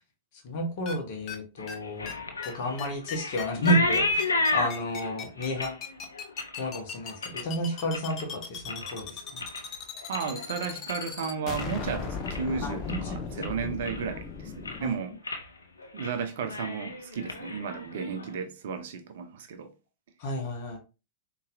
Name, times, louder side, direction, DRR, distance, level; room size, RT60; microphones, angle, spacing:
voice 1, 0.4-2.1 2.4-5.8 6.6-9.4 12.6-13.5 14.8-14.9 20.2-20.8, equal, 55° left, 1.2 m, -31 dB
sound 1, 0.9-1.0 1.3-1.4 1.7-1.8 2.1-2.2 2.4-2.5 2.8-14.9, left 6 dB, 40° left, 0.7 m, -37 dB
sound 2, 1.6-8.2 8.6-9.1 9.3-11.8 12.1-12.6 12.9-13.0 13.4-14.2 14.5-14.9 15.2-15.5 15.8-16.1 16.4-18.3, left 2 dB, 85° left, 0.5 m, -32 dB
voice 2, 10.1-15.2 15.9-19.7, right 6 dB, 65° right, 0.7 m, -34 dB
4.0 x 3.0 x 2.6 m
figure-of-eight pair, 95°, 0 cm